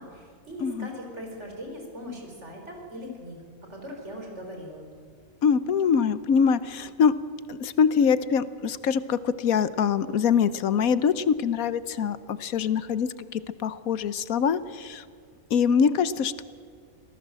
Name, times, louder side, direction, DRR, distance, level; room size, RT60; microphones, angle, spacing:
voice 1, 0.0-3.4 3.7-4.8, equal, 55° right, 2 dB, 5.1 m, -39 dB
voice 2, 5.4-7.1 7.5-15.0 15.5-16.4, left 7 dB, 80° left, 15 dB, 1.3 m, -24 dB
26.0 x 17.5 x 7.6 m, 2.2 s
omnidirectional pair, 1.5 m